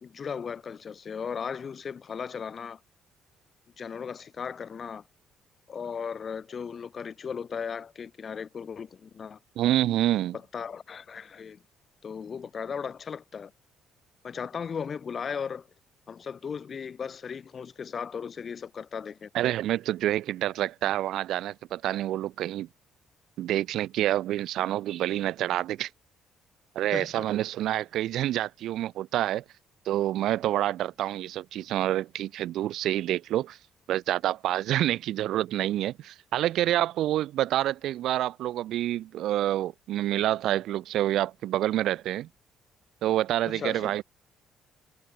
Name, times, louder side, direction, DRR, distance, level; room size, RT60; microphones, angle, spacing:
voice 1, 0.0-2.8 3.8-5.1 5.7-9.4 10.3-11.6 12.0-13.5 14.2-15.7 16.1-19.3 26.9-27.3 43.4-43.9, left 6 dB, 45° left, 0.8 m, -36 dB
voice 2, 9.6-10.4 19.3-22.7 23.4-25.9 26.8-29.4 29.9-33.6 33.9-42.3 43.0-44.0, right 13 dB, 75° right, 0.5 m, -27 dB
supercardioid pair, 65°, 0 cm